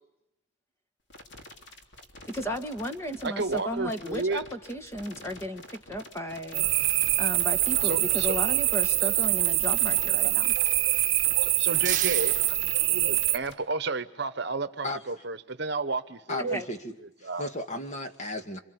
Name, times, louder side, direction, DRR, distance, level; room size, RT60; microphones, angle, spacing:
sound 1, 1.1-13.5, left 1 dB, 55° left, 3.3 m, -48 dB
voice 1, 2.2-6.7 7.2-10.5 16.4-16.7, equal, 15° left, 1.8 m, -34 dB
voice 2, 3.2-4.4 7.8-8.4 11.4-16.6 17.2-17.5, right 3 dB, 55° right, 1.2 m, -32 dB
sound 2, 6.5-13.4, right 16 dB, 70° right, 1.1 m, -24 dB
sound 3, 11.3-13.5, right 9 dB, 40° right, 1.5 m, -38 dB
voice 3, 16.3-18.6, left 1 dB, 35° left, 2.0 m, -35 dB
27.0 x 26.5 x 8.2 m
head